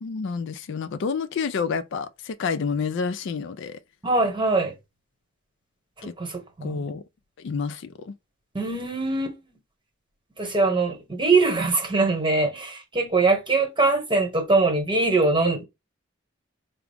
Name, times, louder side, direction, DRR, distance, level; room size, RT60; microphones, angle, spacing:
voice 1, 0.0-3.8 6.0-6.1 6.6-7.0 7.4-8.1, left 5 dB, 60° left, 0.4 m, -29 dB
voice 2, 4.0-4.7 6.2-6.8 8.5-9.4 10.4-15.6, right 3 dB, 20° right, 1.1 m, -22 dB
4.8 x 2.0 x 3.3 m
head